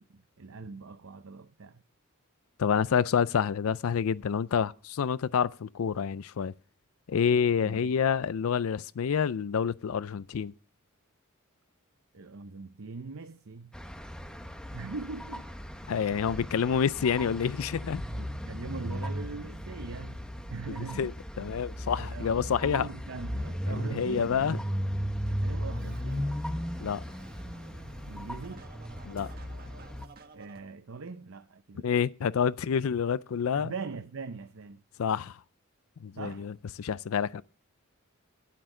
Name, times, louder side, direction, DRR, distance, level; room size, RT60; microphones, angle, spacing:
voice 1, 0.1-1.8 7.6-7.9 12.1-13.7 14.7-15.5 18.1-20.2 20.5-21.5 22.0-24.6 25.2-26.3 28.1-28.7 30.3-31.9 33.5-34.8 36.2-36.5, right 4 dB, 65° right, 0.7 m, -41 dB
voice 2, 2.6-6.5 7.1-10.5 15.9-18.0 21.0-21.1 21.4-22.9 23.7-24.6 26.8-27.0 29.1-29.3 31.8-33.7 35.0-35.4 36.0-36.5 36.8-37.4, left 7 dB, 75° left, 0.4 m, -28 dB
sound 1, 13.7-30.1, equal, 5° left, 1.0 m, -36 dB
Scratching (performance technique), 25.8-30.6, right 2 dB, 45° right, 1.6 m, -52 dB
12.0 x 10.0 x 3.8 m
head